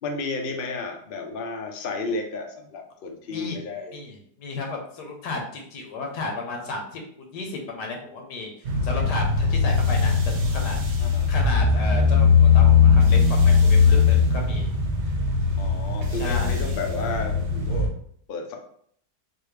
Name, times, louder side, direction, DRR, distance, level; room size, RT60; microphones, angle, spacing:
voice 1, 0.0-4.0 11.0-11.3 15.6-17.9 18.3-18.6, left 3 dB, 60° left, 2 dB, 0.6 m, -32 dB
voice 2, 3.3-3.6 3.9-8.5 8.8-10.8 11.3-14.7 16.1-16.6, left 3 dB, 90° left, 1 dB, 1.5 m, -33 dB
sound 1, 8.7-17.9, left 5 dB, 55° right, 0.9 m, -19 dB
4.0 x 2.6 x 3.3 m, 0.63 s
omnidirectional pair, 1.7 m